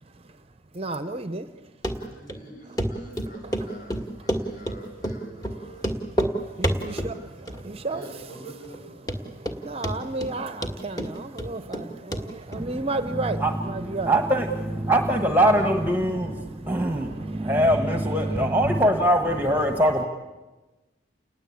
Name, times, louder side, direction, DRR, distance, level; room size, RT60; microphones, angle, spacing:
voice 1, 0.1-0.4 0.7-1.7 6.1-7.1 7.4-8.2 9.2-14.1 16.6-17.6 18.2-18.4, right 2 dB, 30° right, 10 dB, 0.7 m, -34 dB
Run, 1.8-2.0 2.3-2.4 2.8-2.9 3.2-4.8 5.0-5.2 5.4-5.5 5.8-6.3 6.6-7.1 7.5-7.9 8.2-8.3 8.7-8.8 9.1-9.6 9.8-10.3 10.6-11.8 12.1-12.2 12.5-12.6, right 1 dB, 20° left, 1.8 m, -27 dB
voice 2, 1.9-6.0 6.3-7.3 7.9-9.2, right 2 dB, 40° left, 1 dB, 7.5 m, -46 dB
voice 3, 12.6-20.0, right 1 dB, 10° right, 5 dB, 1.3 m, -23 dB
29.5 x 20.0 x 8.5 m, 1.2 s
head